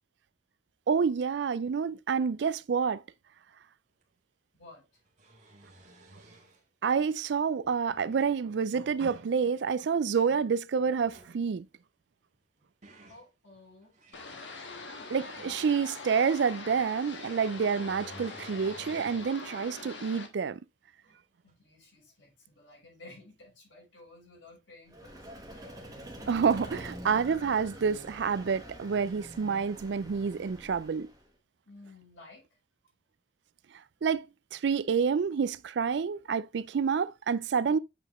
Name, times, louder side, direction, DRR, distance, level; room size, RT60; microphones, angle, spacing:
voice 1, 0.9-3.0 6.8-11.6 15.1-20.6 26.3-31.1 34.0-34.2 34.5-37.8, right 6 dB, 65° right, 0.4 m, -28 dB
sound 1, 4.0-4.1 4.9-6.6 7.6-8.4 8.8-9.3 10.9-11.4 12.3-13.3 13.8-16.0 17.2-19.3 19.9-20.0 21.5-21.6, right 1 dB, 40° right, 1.8 m, -54 dB
voice 2, 4.5-4.9 13.1-14.0 21.0-21.2 21.4-25.2 25.5-25.7 31.7-32.5, left 2 dB, 85° left, 4.3 m, -53 dB
sound 2, 14.1-20.3, left 3 dB, 70° left, 1.3 m, -43 dB
Vehicle, 24.9-31.3, equal, 20° right, 1.3 m, -46 dB
8.1 x 4.9 x 3.0 m
head